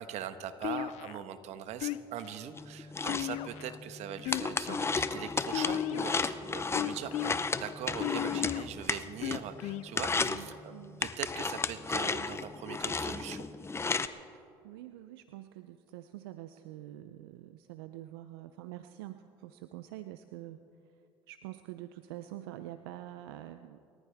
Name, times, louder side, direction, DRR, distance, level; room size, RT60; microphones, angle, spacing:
voice 1, 0.0-10.7 11.0-13.5, right 9 dB, 65° right, 10 dB, 1.3 m, -41 dB
sound 1, 0.6-1.2 1.8-2.3 3.1-3.8 4.2-4.9 5.5-6.2 6.7-7.3 8.0-8.6 9.2-9.9, left 15 dB, 65° left, 0.5 m, -35 dB
sound 2, 2.6-9.6 9.9-10.4 11.0-14.1, left 4 dB, 20° left, 0.8 m, -33 dB
voice 2, 10.2-11.0 14.3-20.6 21.3-23.8, right 14 dB, 85° right, 10 dB, 0.6 m, -46 dB
29.0 x 14.0 x 3.5 m, 2.4 s
hypercardioid pair, 70°, 12 cm